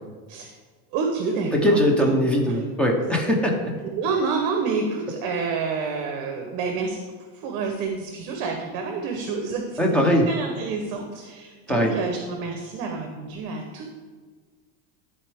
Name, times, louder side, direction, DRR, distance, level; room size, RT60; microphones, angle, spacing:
voice 1, 0.9-1.8 2.5-2.7 4.0-7.0 7.3-13.9, right 4 dB, 50° right, 3 dB, 0.9 m, -28 dB
voice 2, 1.5-3.6 9.8-10.3 11.7-11.9, equal, 5° left, 0 dB, 0.7 m, -20 dB
12.0 x 4.5 x 3.4 m, 1.5 s
cardioid pair, 165°, 39 cm